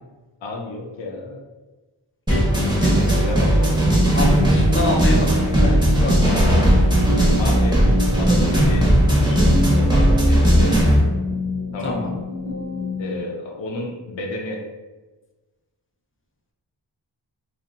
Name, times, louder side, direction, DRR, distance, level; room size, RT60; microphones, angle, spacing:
voice 1, 0.4-1.4 2.9-3.8 7.4-7.8 8.2-8.9 9.3-10.7 11.7-12.1 13.0-14.6, left 2 dB, 75° left, -1 dB, 0.5 m, -31 dB
sound 1, 2.3-11.0, equal, 10° right, 0.8 m, -17 dB
voice 2, 2.8-3.2 4.1-6.4 7.2-7.3 11.8-12.2, left 1 dB, 30° left, 0 dB, 0.5 m, -26 dB
sound 2, 3.3-13.2, left 1 dB, 80° right, 0.8 m, -27 dB
2.7 x 2.4 x 2.6 m, 1.2 s
wide cardioid pair, 50°, 45 cm